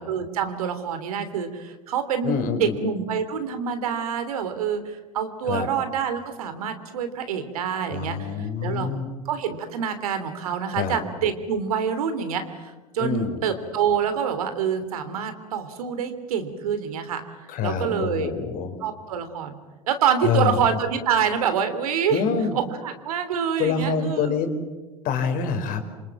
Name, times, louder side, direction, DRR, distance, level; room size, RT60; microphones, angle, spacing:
voice 1, 0.0-8.9 9.2-17.2 17.6-18.3 18.8-19.6 19.9-22.2 22.5-24.4, right 7 dB, 75° right, 9 dB, 3.3 m, -26 dB
voice 2, 2.2-2.7 5.4-5.7 7.9-9.1 10.7-11.0 13.0-13.4 17.5-18.8 20.2-20.6 22.1-22.6 23.6-24.5 25.0-25.8, left 6 dB, 50° left, 6 dB, 4.7 m, -26 dB
27.0 x 26.0 x 7.6 m, 1.2 s
hypercardioid pair, 85°, 19 cm